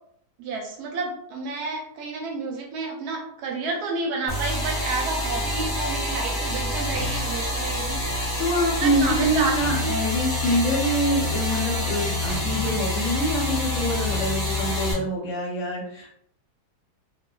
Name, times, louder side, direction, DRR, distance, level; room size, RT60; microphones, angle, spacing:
voice 1, 0.4-8.0 8.8-9.5 9.8-9.9, right 3 dB, 75° right, 1 dB, 1.0 m, -30 dB
sound 1, 4.3-14.9, left 2 dB, 15° left, 0.6 m, -27 dB
voice 2, 8.4-16.1, right 1 dB, 60° left, -3 dB, 0.9 m, -25 dB
2.5 x 2.3 x 2.2 m, 0.67 s
omnidirectional pair, 1.8 m